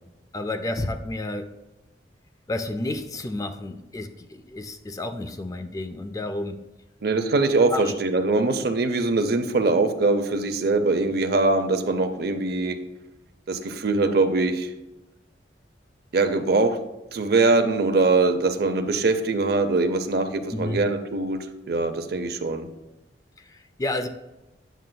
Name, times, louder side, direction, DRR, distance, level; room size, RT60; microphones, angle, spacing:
voice 1, 0.3-1.5 2.5-6.6 7.7-8.0 20.5-20.8 23.4-24.1, left 2 dB, 20° left, 8 dB, 0.3 m, -31 dB
voice 2, 7.0-12.8 13.5-14.7 16.1-16.8 17.1-21.4 21.7-22.7, right 3 dB, 55° right, 7 dB, 0.6 m, -22 dB
9.1 x 6.6 x 2.2 m, 0.99 s
head